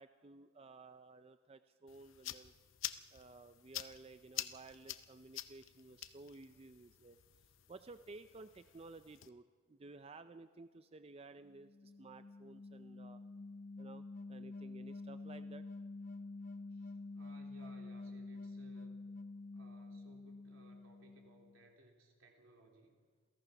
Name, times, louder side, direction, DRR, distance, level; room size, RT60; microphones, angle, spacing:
voice 1, 0.0-2.5 3.1-7.2 7.7-13.2 13.8-15.6, right 3 dB, 30° right, 10 dB, 0.5 m, -55 dB
sound 1, 1.9-9.3, left 12 dB, 70° left, 0.7 m, -48 dB
sound 2, 11.5-21.6, left 3 dB, 40° left, 0.9 m, -48 dB
voice 2, 16.7-19.0 19.5-23.0, right 2 dB, 85° right, 1 dB, 3.6 m, -63 dB
28.0 x 16.5 x 5.9 m, 1.5 s
head